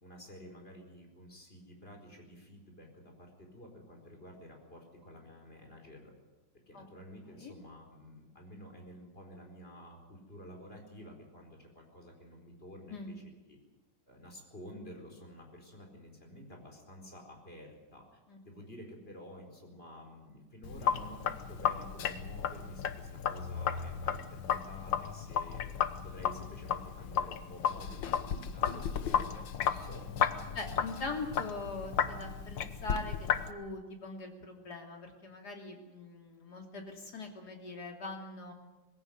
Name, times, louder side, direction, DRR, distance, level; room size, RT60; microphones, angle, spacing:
voice 1, 0.0-6.1 6.7-13.1 13.5-13.6 14.1-18.1 18.4-25.6 26.0-29.2 29.5-30.1 30.5-31.2, equal, 30° left, 2 dB, 4.8 m, -51 dB
Sink (filling or washing), 20.6-33.5, left 8 dB, 80° left, 1.8 m, -34 dB
voice 2, 30.5-38.5, left 3 dB, 60° left, 2 dB, 3.5 m, -42 dB
20.5 x 16.5 x 9.4 m, 1.2 s
omnidirectional pair, 2.0 m